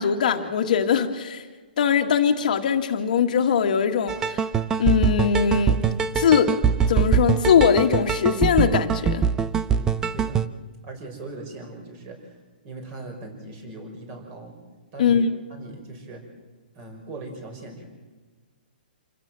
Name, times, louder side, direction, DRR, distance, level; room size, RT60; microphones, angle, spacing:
voice 1, 0.0-1.4 1.8-4.4 4.8-5.8 6.2-6.5 6.9-9.2 15.0-15.3, left 7 dB, 55° left, 5 dB, 1.9 m, -21 dB
sound 1, 4.1-10.5, right 7 dB, 10° right, 0.6 m, -23 dB
voice 2, 9.7-10.4 10.8-14.6 14.9-16.2 16.7-17.8, right 2 dB, 25° right, 5 dB, 5.6 m, -40 dB
27.0 x 16.5 x 7.7 m, 1.4 s
hypercardioid pair, 165°, 5 cm